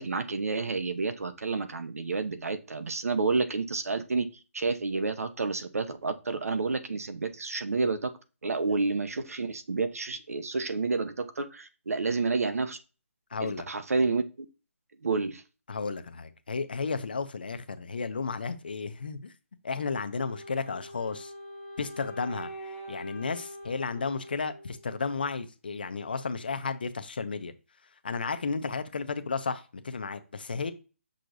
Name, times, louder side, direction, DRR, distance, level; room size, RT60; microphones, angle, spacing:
voice 1, 0.0-4.3 4.5-8.1 8.4-12.8 13.4-14.5 15.0-15.4, right 4 dB, 75° right, 0.9 m, -30 dB
voice 2, 13.3-13.7 15.7-19.3 19.6-21.3 21.8-22.5 22.9-27.5 28.0-30.7, left 4 dB, 40° left, 0.6 m, -33 dB
Wind instrument woodwind instrument, 20.2-25.2, equal, 5° left, 0.7 m, -44 dB
6.3 x 5.7 x 2.6 m
hypercardioid pair, 180°, 8 cm